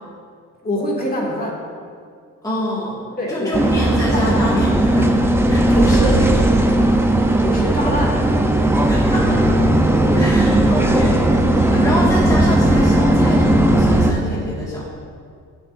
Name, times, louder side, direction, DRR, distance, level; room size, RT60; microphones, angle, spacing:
voice 1, 0.6-1.6 3.2-4.3 5.7-6.2 7.4-8.2 10.1-10.4, equal, 30° left, -3 dB, 2.4 m, -25 dB
voice 2, 2.4-3.0 3.3-6.3 6.7-7.2 8.9-9.6 10.1-11.2 11.6-14.8, left 1 dB, 10° left, -7 dB, 1.9 m, -26 dB
sound 1, 3.5-14.1, right 1 dB, 10° right, 0.7 m, -16 dB
16.0 x 6.8 x 2.6 m, 2.2 s
cardioid pair, 90°, 30 cm